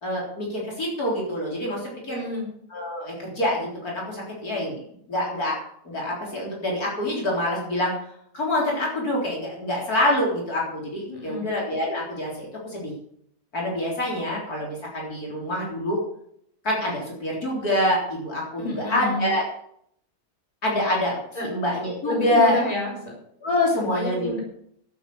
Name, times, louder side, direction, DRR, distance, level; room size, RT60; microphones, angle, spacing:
voice 1, 0.0-2.2 2.7-4.8 5.1-5.5 5.8-7.9 8.3-12.9 13.5-16.0 16.6-19.4 20.6-22.6 23.4-24.4, left 1 dB, 60° left, -3 dB, 4.3 m, -26 dB
voice 2, 2.1-2.5 11.1-11.5 18.6-19.3 21.3-21.5 22.0-23.1 23.8-24.4, left 1 dB, 20° left, -1 dB, 4.6 m, -29 dB
12.0 x 8.6 x 6.8 m, 0.68 s
omnidirectional pair, 1.8 m